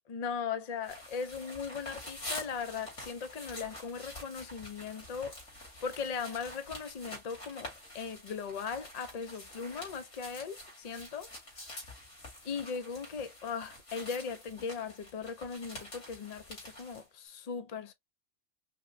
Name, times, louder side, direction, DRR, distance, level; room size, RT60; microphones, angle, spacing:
voice 1, 0.1-5.4 5.8-11.3 12.4-17.9, left 6 dB, 45° left, 0.6 m, -38 dB
sound 1, 0.8-17.0, left 1 dB, 85° left, 2.5 m, -47 dB
5.3 x 2.2 x 2.6 m
omnidirectional pair, 1.3 m